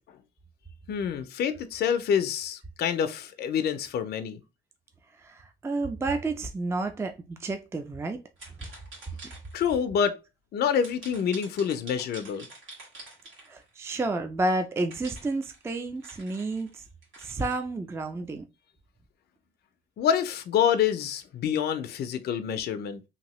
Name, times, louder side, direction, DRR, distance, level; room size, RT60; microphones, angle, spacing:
voice 1, 0.9-4.4 9.5-10.2 10.5-12.5 20.0-23.0, left 8 dB, 55° left, 0.4 m, -27 dB
voice 2, 5.2-8.2 8.6-8.7 13.5-16.7 17.2-18.4, right 2 dB, 15° right, 0.4 m, -30 dB
sound 1, 8.4-9.7 10.8-13.8 14.9-17.5, right 2 dB, 80° right, 1.7 m, -47 dB
2.8 x 2.6 x 2.9 m
cardioid pair, 90°, 20 cm